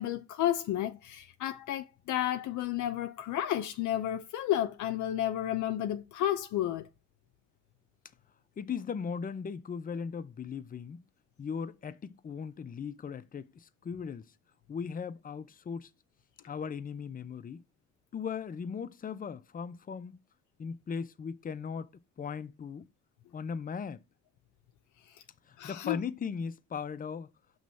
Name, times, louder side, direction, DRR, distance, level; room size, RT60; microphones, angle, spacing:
voice 1, 0.0-6.9 25.6-26.0, left 12 dB, 75° left, 0.6 m, -32 dB
voice 2, 8.6-11.0 11.4-14.3 14.7-15.9 16.5-17.6 18.1-20.2 20.6-21.9 22.2-22.9 23.3-24.0 25.5-27.3, left 6 dB, 30° left, 0.5 m, -38 dB
5.9 x 3.1 x 5.5 m
cardioid pair, 90°, 30 cm